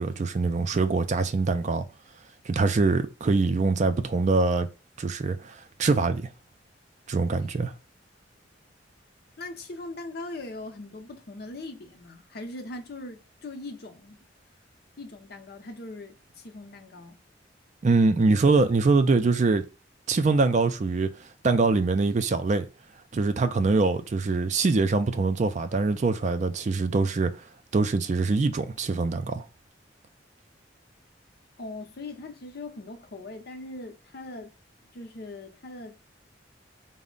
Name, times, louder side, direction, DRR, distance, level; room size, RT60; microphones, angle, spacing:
voice 1, 0.0-1.8 2.5-4.7 5.0-6.3 7.1-7.7 17.8-19.6 20.1-21.1 21.4-22.7 23.1-27.3 27.7-29.4, right 3 dB, 40° right, 0.4 m, -23 dB
voice 2, 9.4-14.2 15.0-17.2 31.6-34.5 34.9-36.0, left 2 dB, 55° left, 0.7 m, -40 dB
4.1 x 2.1 x 3.7 m
head